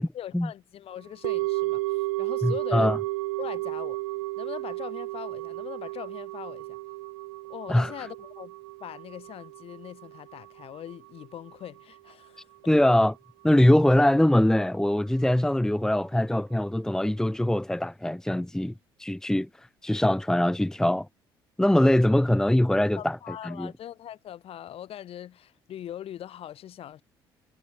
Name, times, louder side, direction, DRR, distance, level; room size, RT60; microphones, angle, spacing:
voice 1, 0.1-3.0 3.4-4.0 4.4-6.8 7.5-8.5 8.8-12.8 23.0-27.0, left 11 dB, 50° left, 5.7 m, -41 dB
sound 1, 1.2-11.5 11.8-11.9, right 20 dB, 70° right, 5.0 m, -33 dB
voice 2, 2.4-3.0 7.7-7.9 12.7-13.2 13.4-18.7 19.0-19.5 19.8-21.1 21.6-23.2 23.4-23.7, left 1 dB, 5° left, 1.0 m, -22 dB
figure-of-eight pair, 50°, 12 cm